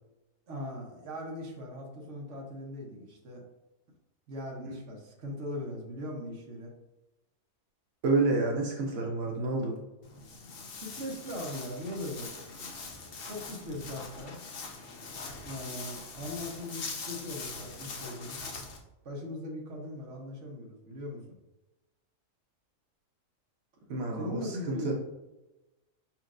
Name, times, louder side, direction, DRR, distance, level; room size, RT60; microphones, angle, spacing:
voice 1, 0.5-3.4 4.3-6.7 10.7-12.6 13.2-14.4 15.4-18.4 19.0-21.2 24.2-24.9, left 1 dB, 60° right, -1 dB, 1.3 m, -40 dB
voice 2, 8.0-9.8 23.9-24.9, right 3 dB, 80° right, 0 dB, 1.2 m, -29 dB
Walk footsteps, 10.0-18.8, left 4 dB, 50° left, 0.8 m, -42 dB
5.0 x 4.4 x 2.4 m, 1.0 s
omnidirectional pair, 1.4 m